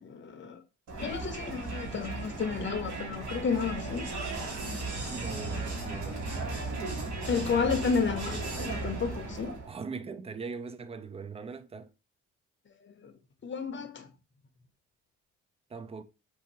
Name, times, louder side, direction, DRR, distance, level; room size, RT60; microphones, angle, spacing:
voice 1, 0.0-0.6 1.0-4.1 5.9-6.0 7.3-9.6 12.8-13.1 13.4-14.1, left 5 dB, 40° left, 0.7 m, -32 dB
Crowd, 0.9-9.7, right 2 dB, 75° right, 1.5 m, -36 dB
voice 2, 5.1-6.3 9.7-11.9 15.7-16.0, right 5 dB, 20° right, 0.4 m, -40 dB
3.6 x 2.6 x 2.8 m
cardioid pair, 90°, 30 cm